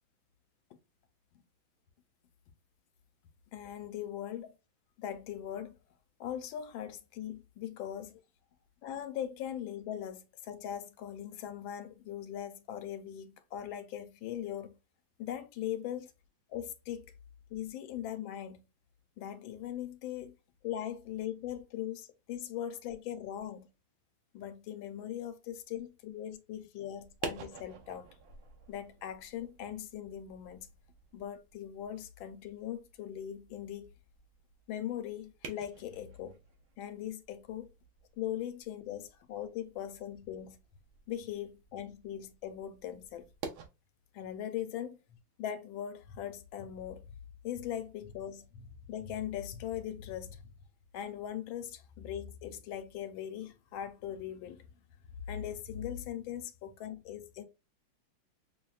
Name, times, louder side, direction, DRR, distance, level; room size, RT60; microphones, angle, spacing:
voice 1, 3.5-4.5 5.0-5.8 6.2-8.2 8.8-14.7 15.2-16.1 16.5-17.1 17.5-18.6 19.2-20.3 20.6-23.7 24.3-28.1 28.7-30.7 31.1-33.9 34.7-36.4 36.8-37.7 38.2-40.6 41.1-43.2 44.1-45.0 45.4-47.0 47.4-50.5 50.9-54.6 55.3-57.4, left 10 dB, 80° left, 1.4 m, -40 dB
sound 1, 27.0-43.7, right 5 dB, 85° right, 1.5 m, -50 dB
6.1 x 2.1 x 2.3 m
omnidirectional pair, 2.2 m